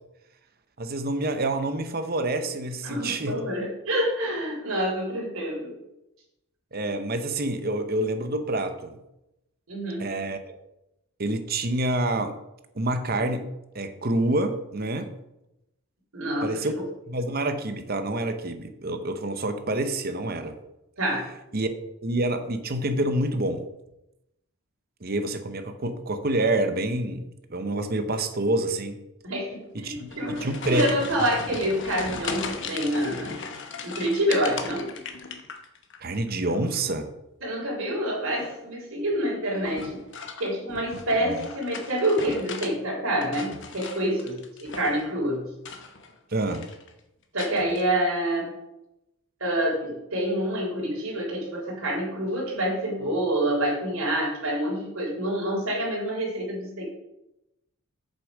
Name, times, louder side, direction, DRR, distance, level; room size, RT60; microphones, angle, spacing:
voice 1, 0.8-3.4 6.7-9.0 10.0-10.6 11.2-12.4 12.7-13.5 13.7-15.1 16.4-16.7 17.1-20.6 21.5-21.7 22.0-23.6 25.0-29.0 29.7-30.0 30.3-30.9 32.0-32.2 36.0-37.1 41.2-41.4 46.3-46.7, right 1 dB, 40° right, 9 dB, 0.8 m, -27 dB
voice 2, 2.8-5.7 9.7-10.0 16.1-16.6 21.0-21.3 29.2-33.3 33.8-34.9 37.4-40.0 40.4-45.5 47.3-48.5 49.4-56.9, right 1 dB, 65° right, -2 dB, 3.7 m, -27 dB
sound 1, 30.0-36.0 36.3-36.9 38.3-38.7 39.7-42.7 43.1-45.1 45.6-46.2 46.4-46.9 47.4-47.8, left 4 dB, 55° left, 1.0 m, -38 dB
8.1 x 6.9 x 4.9 m, 0.90 s
head